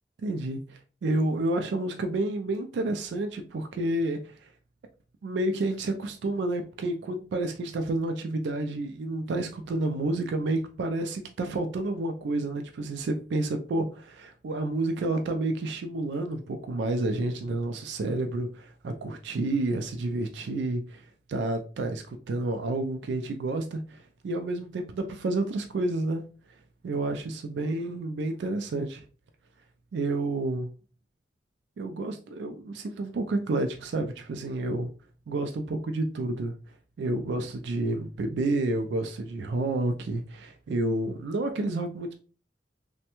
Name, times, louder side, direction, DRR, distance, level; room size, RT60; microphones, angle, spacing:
voice 1, 0.2-4.5 5.2-13.8 14.2-26.2 26.8-29.0 29.9-30.7 31.8-34.9 35.3-36.5 37.0-42.1, right 2 dB, 80° right, 0.3 m, -30 dB
3.2 x 2.1 x 2.9 m
head